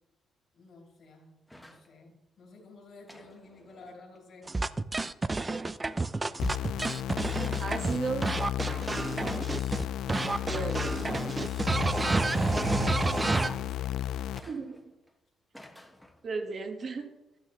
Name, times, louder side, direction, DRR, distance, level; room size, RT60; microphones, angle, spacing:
voice 1, 0.5-4.6 7.3-7.8 8.8-9.2 12.2-14.0 14.3-14.5, left 3 dB, 60° left, -1 dB, 2.3 m, -52 dB
sound 1, 1.5-1.9 3.1-4.2 5.3-5.9 6.8-6.9 7.4-7.8 8.7-9.1 10.3-10.9 12.2-12.8 13.3-13.8 14.3-15.1 15.5-16.3, left 1 dB, 5° left, 1.0 m, -52 dB
sound 2, 4.5-9.8 10.1-13.5, right 3 dB, 20° right, 0.4 m, -29 dB
sound 3, 6.4-14.4, left 12 dB, 80° left, 0.4 m, -34 dB
voice 2, 7.6-8.3 10.4-10.9 11.3-11.4 14.5-14.8 16.2-17.1, right 4 dB, 50° right, 5 dB, 1.3 m, -34 dB
11.5 x 9.2 x 2.9 m, 0.97 s
cardioid pair, 90°, 0 cm